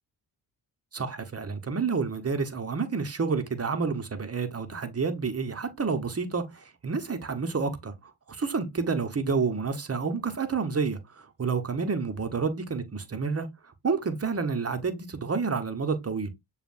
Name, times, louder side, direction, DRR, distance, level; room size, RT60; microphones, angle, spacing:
voice 1, 0.9-16.3, right 5 dB, 30° right, 1.0 m, -29 dB
6.8 x 2.4 x 2.5 m
cardioid pair, 50°, 48 cm